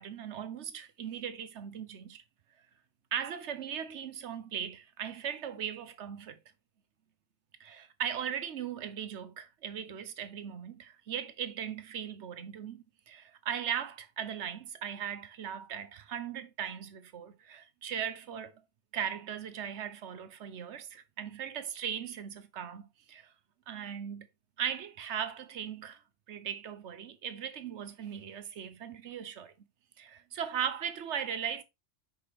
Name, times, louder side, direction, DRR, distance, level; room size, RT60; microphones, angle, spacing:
voice 1, 0.0-2.2 3.1-6.4 7.6-18.5 18.9-23.3 23.7-24.3 24.6-26.0 26.3-29.5 30.0-31.6, right 8 dB, 70° right, 1.0 m, -38 dB
5.6 x 5.2 x 3.3 m
omnidirectional pair, 1.2 m